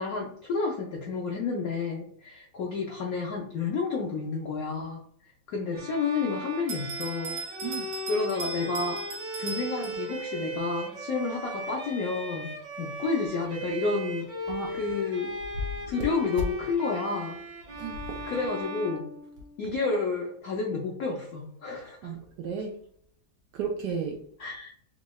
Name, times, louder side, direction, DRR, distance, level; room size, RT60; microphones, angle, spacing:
voice 1, 0.0-5.0 5.5-7.4 8.1-9.0 9.4-12.5 12.8-14.3 14.7-15.3 15.9-17.4 18.2-19.0 19.6-22.1 24.4-24.7, left 4 dB, 80° left, 0.8 m, -30 dB
Bowed string instrument, 5.7-19.8, equal, 55° right, 1.3 m, -38 dB
Bell, 6.7-10.4, right 3 dB, 90° right, 1.5 m, -38 dB
voice 2, 17.8-18.2 22.0-22.7 23.5-24.2, right 6 dB, 75° right, 1.0 m, -33 dB
3.7 x 3.1 x 2.2 m
omnidirectional pair, 2.2 m